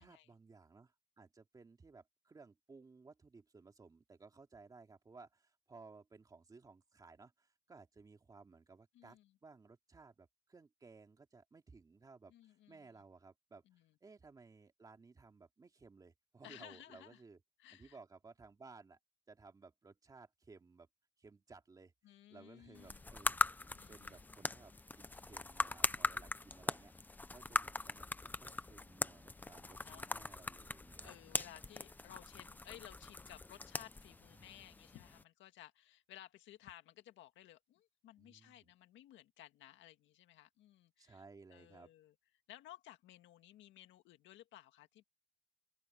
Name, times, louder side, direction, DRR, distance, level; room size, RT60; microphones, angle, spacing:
voice 1, 0.0-13.6 14.0-17.4 17.7-19.0 19.3-20.9 21.2-21.9 22.3-23.4 23.9-31.1 34.4-34.6 38.2-38.7 41.0-41.9, right 4 dB, 20° right, 2.6 m, -59 dB
voice 2, 8.9-9.3 12.3-12.9 13.7-13.9 16.4-17.2 17.6-18.0 22.0-23.1 23.7-24.3 29.4-30.0 31.0-41.2 41.5-42.1 42.5-45.0, left 14 dB, 70° left, 1.8 m, -57 dB
sound 1, 22.7-35.2, left 2 dB, 10° left, 0.6 m, -41 dB
open air
cardioid pair, 160°, 20 cm